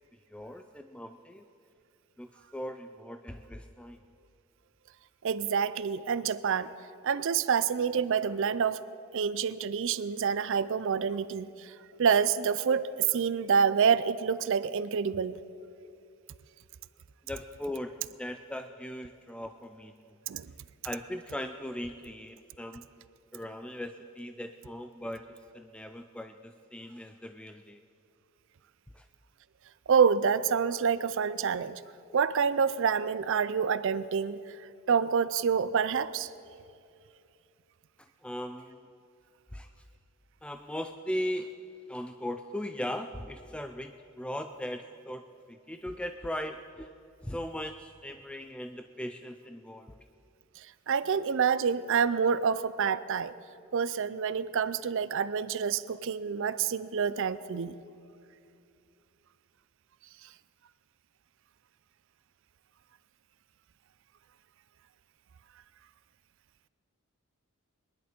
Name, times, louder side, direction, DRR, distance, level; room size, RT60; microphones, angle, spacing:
voice 1, 0.3-1.4 2.2-4.0 17.3-19.9 20.8-22.8 23.3-25.3 25.5-27.8 28.9-29.0 38.0-38.8 39.5-39.7 40.4-41.5 41.9-46.9 47.2-50.0, left 1 dB, 5° left, 7 dB, 0.3 m, -39 dB
voice 2, 5.2-6.7 7.0-8.8 9.1-11.7 12.0-15.4 20.3-20.5 29.9-31.8 32.1-34.4 34.9-36.3 50.9-53.3 53.7-57.8, right 6 dB, 60° right, 15 dB, 0.4 m, -27 dB
23.0 x 11.0 x 4.4 m, 2.5 s
head